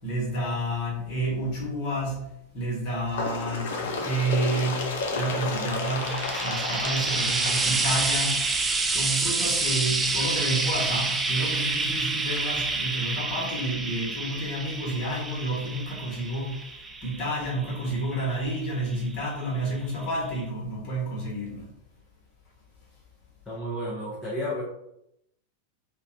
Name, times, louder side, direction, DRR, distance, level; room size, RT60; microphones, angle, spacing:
voice 1, 0.0-8.4 8.9-16.7 17.0-21.7, right 1 dB, 40° left, -3 dB, 1.3 m, -30 dB
Bird, 3.1-8.5 9.4-9.5 9.9-10.0 10.9-11.0 11.9-12.0 12.9-13.0, left 3 dB, 55° left, 0.5 m, -32 dB
Frying (food), 5.6-19.1 20.0-20.1, right 3 dB, 15° right, 0.3 m, -28 dB
voice 2, 23.5-24.6, equal, 15° left, -7 dB, 0.8 m, -32 dB
3.6 x 2.2 x 2.6 m, 0.80 s
figure-of-eight pair, 90°, 0 cm